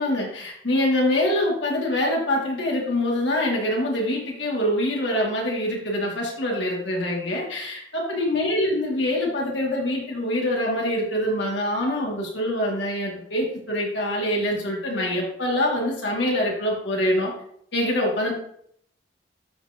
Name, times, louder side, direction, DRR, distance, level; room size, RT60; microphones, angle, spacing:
voice 1, 0.0-17.3 17.7-18.3, left 1 dB, 75° left, -2 dB, 2.3 m, -24 dB
13.0 x 4.6 x 2.9 m, 0.69 s
head